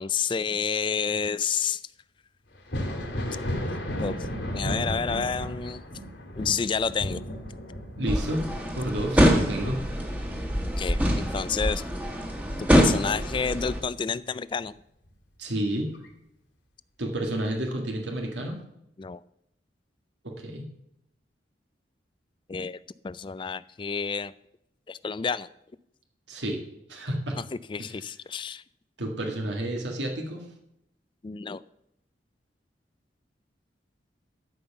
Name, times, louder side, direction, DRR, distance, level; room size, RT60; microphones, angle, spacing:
voice 1, 0.0-1.8 4.0-4.2 4.5-5.8 6.4-7.2 10.8-11.9 12.6-14.7 19.0-19.2 22.5-22.8 23.0-24.3 24.9-25.5 27.7-28.6 31.2-31.6, left 6 dB, 30° left, 17 dB, 0.3 m, -29 dB
Thunder, 2.5-11.9 12.3-13.5 15.0-15.1 15.9-16.1, equal, 80° left, 2.5 m, -34 dB
voice 2, 8.0-9.8 15.4-15.9 17.0-18.6 20.2-20.7 26.3-26.6 26.9-27.4 29.0-30.5, right 1 dB, 90° right, 2 dB, 1.8 m, -30 dB
sound 1, 8.1-13.8, equal, 10° right, 1.4 m, -24 dB
13.0 x 5.6 x 6.9 m, 0.80 s
head